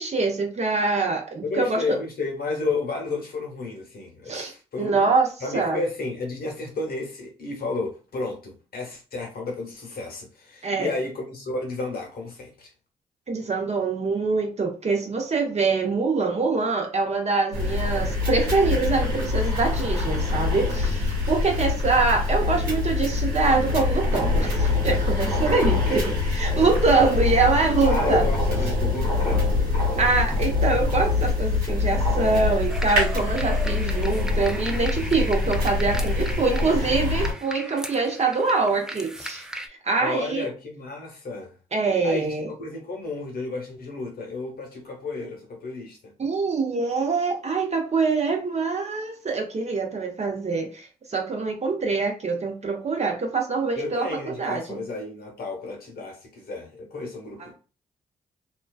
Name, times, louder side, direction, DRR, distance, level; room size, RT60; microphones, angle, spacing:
voice 1, 0.0-1.8 4.3-4.5 4.8-5.3 5.5-5.8 10.6-10.9 13.3-28.2 30.0-39.5 39.8-40.5 41.7-42.5 46.2-54.8, right 4 dB, 40° right, 0.8 m, -24 dB
voice 2, 1.4-5.1 5.4-12.7 25.6-26.1 27.8-30.0 40.0-41.6 42.0-46.1 53.8-57.5, left 3 dB, 60° left, 1.0 m, -32 dB
sound 1, 17.5-37.3, left 3 dB, 85° right, 1.2 m, -24 dB
sound 2, 32.7-39.7, equal, 5° right, 0.4 m, -37 dB
2.3 x 2.3 x 2.3 m
hypercardioid pair, 40°, 18 cm